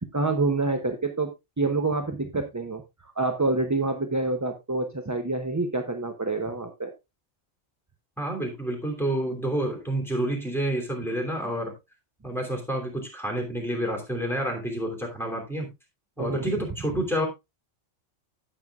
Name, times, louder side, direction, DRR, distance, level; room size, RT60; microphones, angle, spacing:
voice 1, 0.1-1.3 1.6-6.9 16.2-16.5, right 3 dB, 20° right, 5 dB, 0.6 m, -27 dB
voice 2, 8.2-11.7 12.2-15.7 16.2-17.3, right 1 dB, ahead, 0 dB, 2.9 m, -29 dB
16.5 x 6.0 x 2.4 m, 0.23 s
omnidirectional pair, 1.2 m